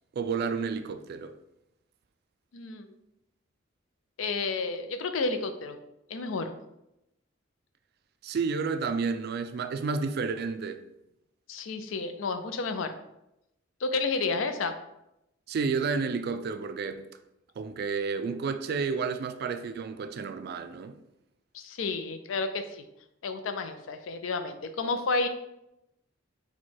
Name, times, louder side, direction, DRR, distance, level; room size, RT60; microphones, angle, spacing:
voice 1, 0.1-1.4 8.2-10.8 15.5-17.1 17.6-21.0, right 5 dB, 50° right, 0.3 m, -31 dB
voice 2, 2.5-2.9 4.2-5.8 6.1-6.5 11.5-12.9 13.8-14.7 21.5-22.8 23.2-25.3, left 3 dB, 85° left, 0.4 m, -31 dB
4.6 x 2.2 x 4.3 m
head